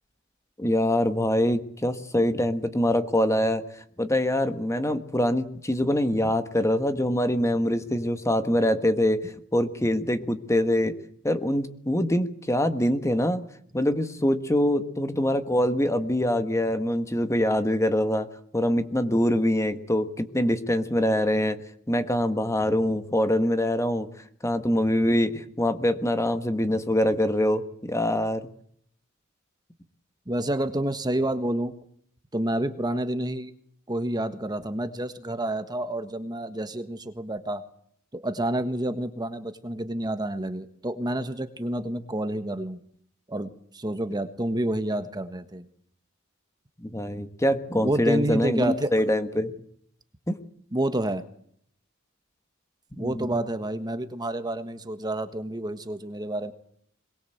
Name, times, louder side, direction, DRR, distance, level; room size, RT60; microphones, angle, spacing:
voice 1, 0.6-3.6 4.0-10.9 11.2-13.5 13.7-18.3 18.5-21.6 21.9-24.1 24.4-28.4 46.8-49.5 50.3-50.4 53.0-53.3, left 1 dB, 15° left, 9 dB, 1.6 m, -24 dB
voice 2, 30.3-31.7 32.3-33.5 33.9-37.6 38.1-42.8 43.3-43.5 43.7-45.6 47.7-48.9 50.7-51.2 52.9-56.5, right 1 dB, 20° right, 9 dB, 1.4 m, -29 dB
23.0 x 22.0 x 8.0 m, 0.66 s
head